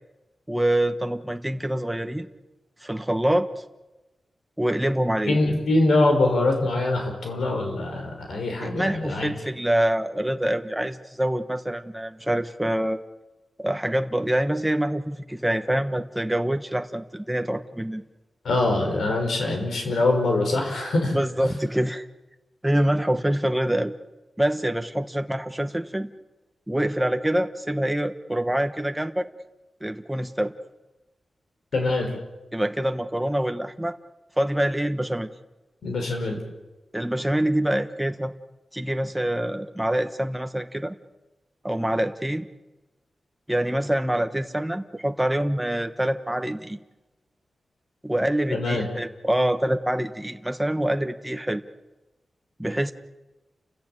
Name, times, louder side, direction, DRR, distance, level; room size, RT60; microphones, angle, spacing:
voice 1, 0.5-2.3 2.8-3.6 4.6-5.4 8.6-13.0 13.6-18.0 21.1-22.1 22.6-23.9 24.4-26.1 26.7-29.3 29.8-30.5 32.5-33.9 34.4-35.3 36.9-38.3 38.7-40.9 41.6-42.5 43.5-46.8 48.0-51.6 52.6-52.9, right 1 dB, 5° right, 7 dB, 1.1 m, -25 dB
voice 2, 5.3-9.3 18.4-21.2 31.7-32.1 35.8-36.4 48.5-48.9, left 2 dB, 90° left, 3 dB, 5.8 m, -23 dB
29.5 x 14.5 x 9.0 m, 1.1 s
wide cardioid pair, 90°, 0 cm